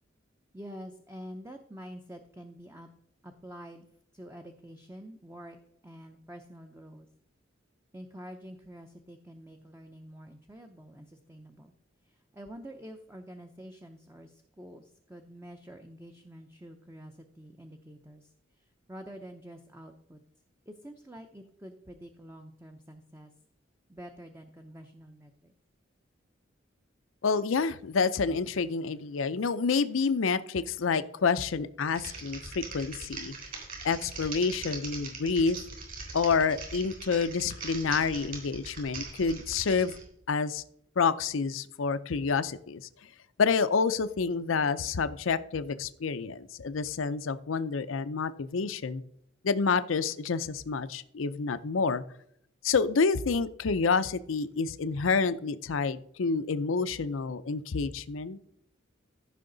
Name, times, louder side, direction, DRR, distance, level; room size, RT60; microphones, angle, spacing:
voice 1, 0.5-2.9 3.2-3.9 4.1-5.6 5.8-7.1 7.9-11.7 12.0-20.2 20.7-23.3 23.9-25.5, equal, 15° right, 5 dB, 0.6 m, -47 dB
voice 2, 27.2-33.3 33.8-35.6 36.1-40.0 40.3-40.6 41.0-42.9 43.4-49.0 49.4-52.0 52.6-58.4, left 5 dB, 90° left, 13 dB, 0.6 m, -28 dB
Typing, 31.9-40.0, right 4 dB, 45° right, 3.3 m, -41 dB
14.5 x 5.7 x 3.9 m, 0.70 s
head